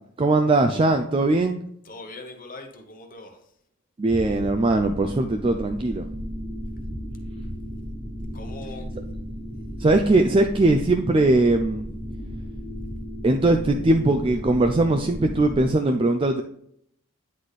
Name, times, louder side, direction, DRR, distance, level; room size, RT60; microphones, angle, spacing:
voice 1, 0.2-1.6 4.0-6.1 9.8-11.9 13.2-16.4, right 2 dB, 25° right, 5 dB, 0.3 m, -20 dB
voice 2, 1.9-3.4 8.3-8.9, left 2 dB, 40° left, 4 dB, 1.0 m, -41 dB
sound 1, 4.1-15.7, equal, 5° left, 1.7 m, -35 dB
9.6 x 4.1 x 3.2 m, 0.70 s
head